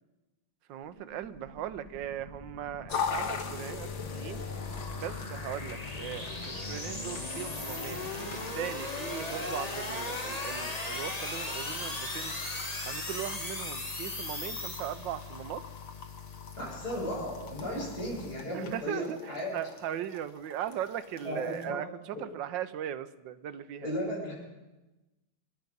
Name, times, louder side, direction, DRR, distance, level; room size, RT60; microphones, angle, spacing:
voice 1, 0.7-4.4 5.0-12.4 12.8-15.6 18.5-23.9, right 11 dB, 80° right, 13 dB, 1.4 m, -39 dB
sound 1, 0.9-15.4, left 2 dB, 20° left, 1.6 m, -38 dB
sound 2, 2.9-21.7, left 6 dB, 85° left, 2.1 m, -41 dB
voice 2, 16.6-19.6 21.2-21.8 23.8-24.3, equal, 55° left, -5 dB, 6.9 m, -35 dB
25.5 x 10.5 x 5.3 m, 1.1 s
omnidirectional pair, 2.0 m